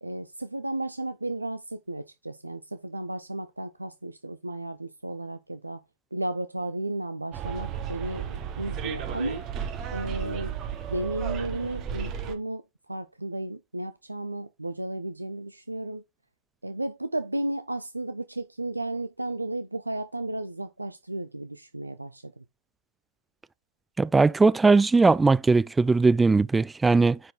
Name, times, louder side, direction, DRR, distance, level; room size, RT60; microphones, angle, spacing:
voice 1, 0.0-5.8 6.1-9.4 9.9-10.5 10.9-16.0 16.6-22.4, right 1 dB, 85° right, 0.5 m, -34 dB
Bus, 7.3-12.3, right 8 dB, 35° right, 1.2 m, -34 dB
voice 2, 24.0-27.2, right 3 dB, 10° right, 0.3 m, -19 dB
10.0 x 4.5 x 3.6 m
figure-of-eight pair, 90°, 0 cm